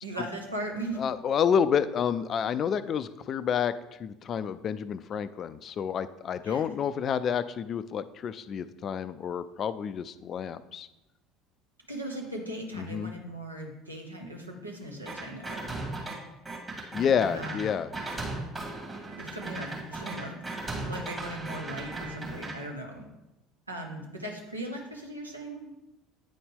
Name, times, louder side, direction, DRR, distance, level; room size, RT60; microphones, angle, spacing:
voice 1, 0.0-1.0 6.4-6.6 11.9-15.8 17.3-17.8 19.2-20.4 20.7-23.0 23.7-25.7, right 1 dB, 85° right, 1 dB, 0.9 m, -38 dB
voice 2, 1.0-10.9 12.7-13.1 16.9-17.9, left 7 dB, 40° left, 14 dB, 0.3 m, -29 dB
sound 1, 15.1-16.1 16.5-22.5, right 2 dB, 20° right, 2.2 m, -37 dB
9.2 x 4.2 x 3.5 m, 0.97 s
figure-of-eight pair, 65°, 0 cm